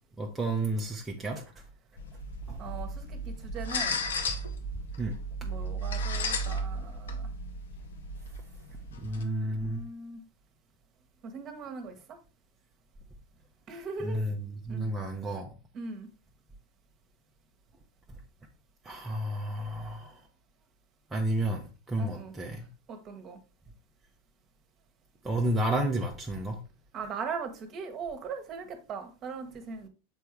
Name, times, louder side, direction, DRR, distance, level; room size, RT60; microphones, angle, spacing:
voice 1, 0.2-1.4 2.5-2.6 5.0-5.1 9.0-9.8 14.0-15.5 18.8-20.2 21.1-22.7 25.2-26.6, right 1 dB, 10° right, 0.9 m, -31 dB
sound 1, 2.0-9.2, equal, 65° left, 0.9 m, -34 dB
voice 2, 2.6-4.0 5.4-7.3 9.2-10.2 11.2-12.2 13.7-14.3 14.7-14.9 15.7-16.1 22.0-22.3 22.9-23.4 26.9-29.9, right 5 dB, 30° right, 1.3 m, -40 dB
7.2 x 4.5 x 3.2 m
figure-of-eight pair, 90°, 0 cm